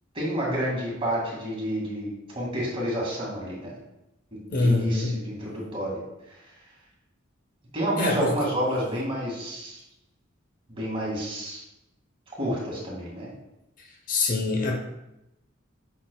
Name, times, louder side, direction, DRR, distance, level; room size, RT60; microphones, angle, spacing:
voice 1, 0.1-3.7 4.6-6.0 7.7-9.8 10.7-11.6 12.4-13.3, equal, 30° right, -4 dB, 2.3 m, -29 dB
voice 2, 4.5-5.1 8.0-8.3 14.1-14.8, left 2 dB, 40° left, 1 dB, 0.9 m, -24 dB
8.1 x 6.2 x 2.3 m, 0.90 s
head